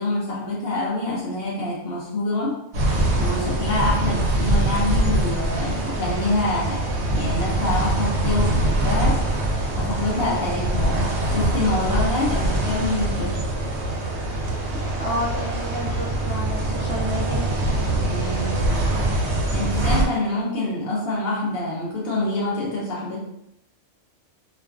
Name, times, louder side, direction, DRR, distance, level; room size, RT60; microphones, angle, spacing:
voice 1, 0.0-2.6 3.2-9.4 9.8-11.1 11.3-13.5 18.0-18.7 19.5-23.2, left 2 dB, 60° left, -5 dB, 0.7 m, -26 dB
sound 1, 2.7-20.0, right 1 dB, 70° right, 0.8 m, -23 dB
voice 2, 15.0-17.5, equal, 35° right, -8 dB, 0.6 m, -30 dB
2.4 x 2.4 x 2.3 m, 0.80 s
omnidirectional pair, 1.3 m